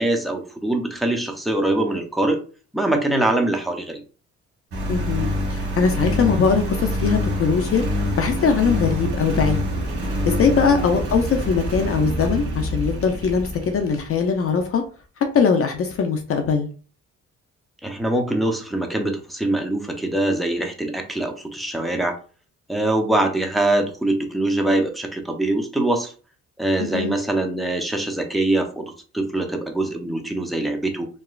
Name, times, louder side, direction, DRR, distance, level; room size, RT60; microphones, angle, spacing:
voice 1, 0.0-2.4 2.7-4.0 10.7-10.8 17.8-22.2 22.7-26.1 26.6-31.1, right 1 dB, ahead, 2 dB, 0.5 m, -23 dB
Engine, 4.7-14.1, equal, 45° right, 1.2 m, -26 dB
voice 2, 4.9-7.8 8.2-9.6 10.3-14.8 15.3-16.7 26.8-27.2, left 6 dB, 50° left, 5 dB, 0.5 m, -21 dB
2.9 x 2.3 x 2.3 m, 0.37 s
cardioid pair, 90°, 30 cm